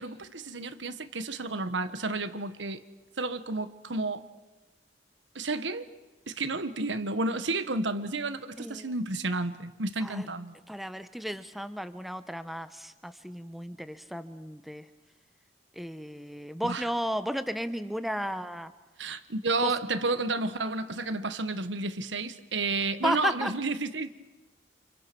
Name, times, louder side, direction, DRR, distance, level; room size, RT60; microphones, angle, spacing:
voice 1, 0.0-2.8 3.2-4.2 5.3-5.9 6.3-10.5 16.6-16.9 19.0-24.1, right 3 dB, 90° right, 10 dB, 1.5 m, -31 dB
voice 2, 10.7-14.8 15.8-18.7 19.6-19.7 23.0-23.5, equal, ahead, 10 dB, 1.0 m, -33 dB
29.5 x 28.5 x 6.2 m, 1.1 s
head